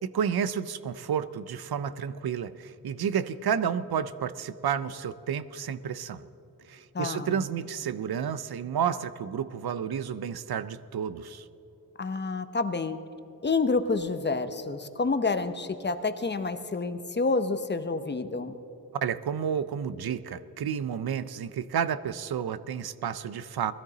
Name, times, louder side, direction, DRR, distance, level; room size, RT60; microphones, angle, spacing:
voice 1, 0.0-6.2 6.7-11.4 18.9-23.7, right 8 dB, 80° right, 14 dB, 0.6 m, -31 dB
voice 2, 6.9-7.3 12.0-13.0 13.4-18.6, left 3 dB, 30° left, 9 dB, 0.7 m, -28 dB
20.0 x 13.0 x 4.0 m, 3.0 s
wide cardioid pair, 130°, 37 cm